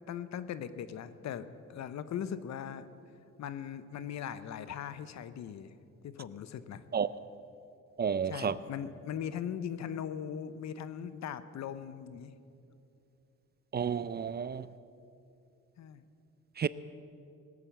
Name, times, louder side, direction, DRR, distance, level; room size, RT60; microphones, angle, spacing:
voice 1, 0.1-2.9 3.4-5.7 6.0-6.8 8.3-12.3 15.8-16.0, left 8 dB, 65° left, 13 dB, 0.8 m, -39 dB
voice 2, 8.0-8.6 13.7-14.7 16.6-16.7, right 7 dB, 35° right, 16 dB, 0.4 m, -31 dB
18.5 x 8.6 x 7.3 m, 2.6 s
cardioid pair, 90°, 30 cm